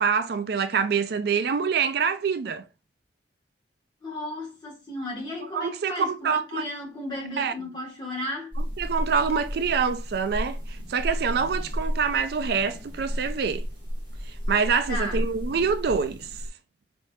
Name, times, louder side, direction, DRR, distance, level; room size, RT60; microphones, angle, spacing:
voice 1, 0.0-2.6 5.5-6.6 7.4-7.5 8.6-13.6 14.3-16.3, right 6 dB, 60° right, 0.4 m, -26 dB
voice 2, 4.0-8.5 14.9-15.2, left 1 dB, 25° left, 2.0 m, -34 dB
sound 1, 8.5-16.5, equal, 30° right, 1.5 m, -32 dB
4.1 x 3.5 x 2.7 m
head